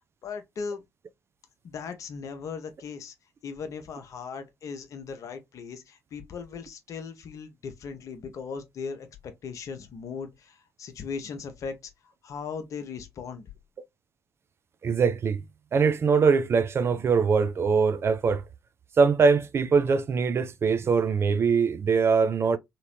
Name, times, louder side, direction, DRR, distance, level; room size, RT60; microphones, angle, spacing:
voice 1, 0.2-0.8 1.6-3.1 3.4-13.5, left 5 dB, 50° left, 0.7 m, -38 dB
voice 2, 14.8-15.4 15.7-18.4 19.0-22.6, right 5 dB, 35° right, 0.4 m, -22 dB
2.9 x 2.8 x 2.9 m
figure-of-eight pair, 40°, 7 cm